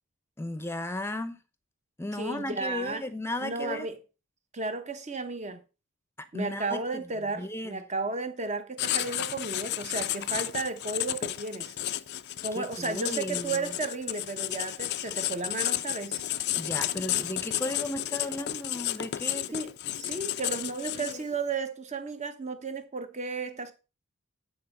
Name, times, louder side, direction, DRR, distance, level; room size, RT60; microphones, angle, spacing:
voice 1, 0.4-1.4 2.0-3.9 6.3-7.0 7.3-7.8 12.5-13.8 16.6-19.5, left 1 dB, 10° left, 0.7 m, -35 dB
voice 2, 2.2-3.0 3.4-4.0 4.5-5.6 6.3-11.7 12.4-16.2 19.5-23.7, right 3 dB, 30° right, 1.0 m, -34 dB
Writing, 8.8-21.4, left 13 dB, 50° left, 0.4 m, -32 dB
9.3 x 4.5 x 5.4 m
head